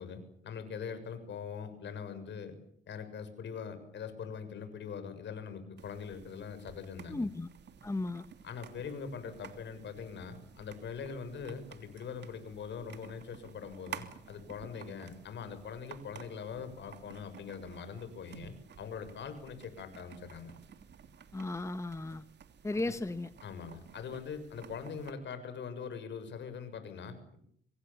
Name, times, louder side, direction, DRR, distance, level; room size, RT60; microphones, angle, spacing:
voice 1, 0.0-2.6 2.9-7.3 8.4-20.5 22.7-22.8 23.4-27.4, left 6 dB, 65° left, 10 dB, 6.9 m, -42 dB
sound 1, 5.8-25.1, right 7 dB, 60° right, 3.0 m, -53 dB
voice 2, 7.1-7.5 7.8-8.3 21.3-22.3 22.6-23.3, left 2 dB, 15° left, 12 dB, 1.3 m, -35 dB
26.5 x 24.0 x 7.4 m, 0.68 s
cardioid pair, 90°, 20 cm